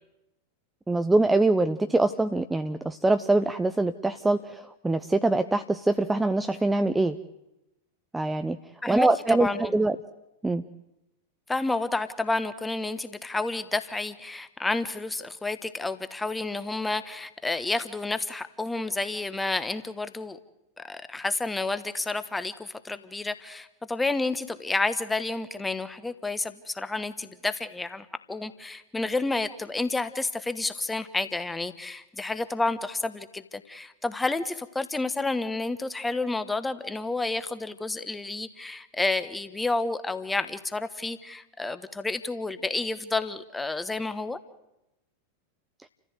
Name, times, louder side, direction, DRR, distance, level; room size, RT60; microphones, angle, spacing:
voice 1, 0.9-7.2 8.1-8.6 8.9-10.0 10.4-10.6, right 2 dB, 10° right, 9 dB, 0.7 m, -24 dB
voice 2, 8.8-9.7 11.5-20.4 20.8-44.4, left 3 dB, 10° left, 12 dB, 1.4 m, -30 dB
29.5 x 14.5 x 8.2 m, 0.92 s
figure-of-eight pair, 90°, 0 cm